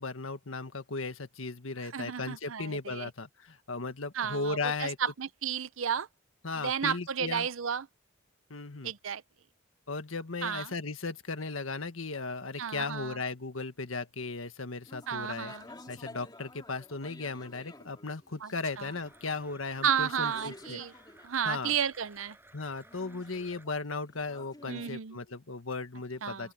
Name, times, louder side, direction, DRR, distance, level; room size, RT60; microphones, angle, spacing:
voice 1, 0.0-5.0 6.4-7.5 8.5-8.9 9.9-15.5 15.9-20.8 21.4-21.8 22.5-26.5, left 3 dB, 90° left, 1.7 m, -36 dB
voice 2, 1.9-3.1 4.1-6.1 6.6-7.9 8.8-9.2 10.4-10.7 12.6-13.2 15.1-15.6 18.4-18.5 18.8-18.9 19.8-20.9 21.2-22.4 24.7-25.2 26.2-26.5, right 7 dB, 80° right, 0.7 m, -32 dB
sound 1, 14.8-21.3 22.8-24.9, left 2 dB, 20° left, 2.5 m, -52 dB
Domestic sounds home sounds, 18.6-23.7, right 2 dB, 10° right, 5.9 m, -58 dB
open air
head